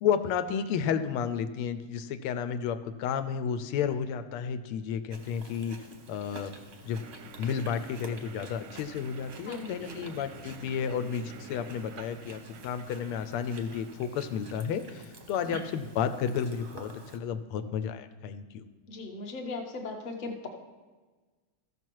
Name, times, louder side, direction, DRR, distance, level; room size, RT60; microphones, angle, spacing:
voice 1, 0.0-5.8 6.1-6.5 6.9-7.0 7.4-18.7, left 7 dB, 90° left, 10 dB, 1.5 m, -32 dB
Chewing mastication, 5.1-17.2, right 3 dB, 50° right, 0.8 m, -49 dB
sound 1, 6.9-14.0, right 4 dB, 70° right, 1.1 m, -50 dB
voice 2, 9.4-10.1 18.9-20.5, left 3 dB, 35° left, 1 dB, 0.8 m, -38 dB
14.0 x 6.1 x 4.6 m, 1.3 s
omnidirectional pair, 2.4 m